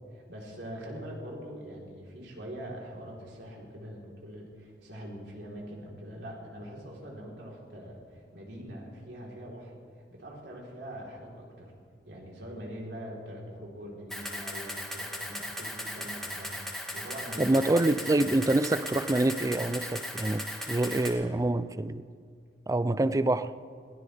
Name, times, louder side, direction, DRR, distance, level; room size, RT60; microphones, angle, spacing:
voice 1, 0.1-9.7 10.1-11.7 12.0-17.8, equal, 75° right, 3.9 m, -43 dB
Camera, 14.1-21.1, equal, ahead, 2.3 m, -37 dB
voice 2, 17.4-22.0 22.7-23.5, right 2 dB, 20° right, 0.4 m, -26 dB
21.5 x 17.5 x 3.5 m
head